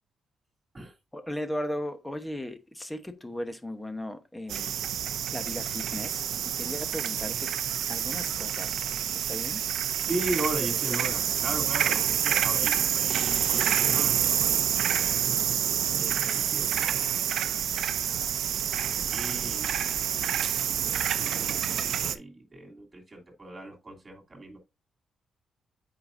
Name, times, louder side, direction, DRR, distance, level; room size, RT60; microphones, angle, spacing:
voice 1, 1.1-4.8 5.3-6.3 6.6-7.5 7.9-9.6, left 1 dB, 10° left, 1.0 m, -36 dB
sound 1, 4.5-22.2, right 10 dB, 80° right, 0.6 m, -28 dB
voice 2, 10.1-15.3 15.8-17.1 18.1-18.5 18.8-20.4 20.7-24.6, right 1 dB, 25° right, 3.1 m, -38 dB
8.5 x 5.0 x 2.6 m
cardioid pair, 115°, 0 cm